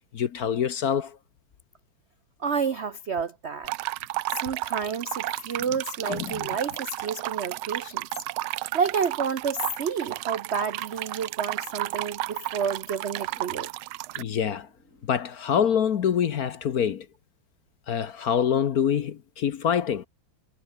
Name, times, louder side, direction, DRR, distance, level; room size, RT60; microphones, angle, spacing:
voice 1, 0.1-1.2 6.1-6.5 14.2-14.7 15.1-17.1 17.9-20.1, left 8 dB, 55° left, 1.2 m, -25 dB
voice 2, 2.4-3.7 4.4-8.1 8.5-13.7, right 6 dB, 65° right, 0.6 m, -30 dB
sound 1, 3.6-14.2, right 17 dB, 85° right, 1.5 m, -33 dB
Zipper (clothing), 10.4-11.9 13.2-13.6 14.1-15.1, left 2 dB, 35° left, 7.2 m, -61 dB
omnidirectional pair, 2.3 m